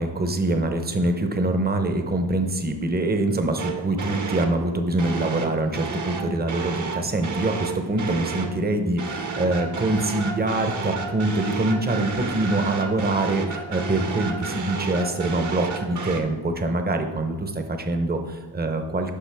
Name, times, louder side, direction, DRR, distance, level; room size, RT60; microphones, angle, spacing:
voice 1, 0.0-19.2, right 2 dB, 20° right, 6 dB, 0.8 m, -24 dB
sound 1, 3.6-4.6 5.0-8.6 9.0-16.2, right 4 dB, 45° right, 1.0 m, -31 dB
10.0 x 5.7 x 3.5 m, 1.2 s
cardioid pair, 100°, 42 cm